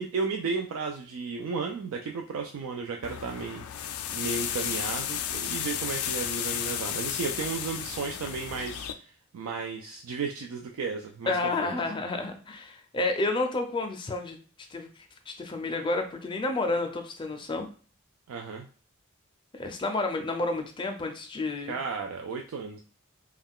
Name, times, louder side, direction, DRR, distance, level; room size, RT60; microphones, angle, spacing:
voice 1, 0.0-11.7 18.3-18.7 21.7-22.8, right 4 dB, 75° right, 2 dB, 0.3 m, -34 dB
sound 1, 3.0-8.9, left 9 dB, 90° left, 0.3 m, -33 dB
voice 2, 11.3-14.4 14.7-17.7 19.5-21.8, left 2 dB, 20° left, 5 dB, 0.4 m, -30 dB
2.3 x 2.2 x 3.5 m, 0.41 s
head